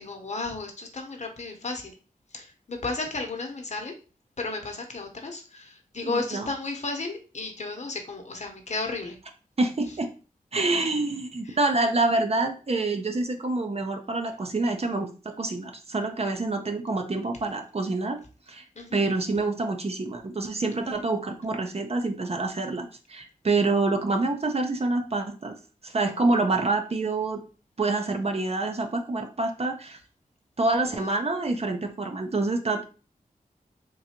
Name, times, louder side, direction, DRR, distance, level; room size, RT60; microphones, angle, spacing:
voice 1, 0.0-1.9 2.3-3.9 4.4-9.2 10.8-10.9 11.5-11.6 18.8-19.0 30.9-31.1, left 3 dB, 50° left, 3 dB, 0.9 m, -34 dB
voice 2, 6.0-6.5 9.6-10.1 10.5-18.2 18.5-18.6 18.9-25.5 25.8-27.4 27.8-30.0 30.6-32.8, right 2 dB, 40° right, 5 dB, 0.7 m, -27 dB
3.7 x 2.7 x 2.9 m, 0.35 s
cardioid pair, 55°, 15 cm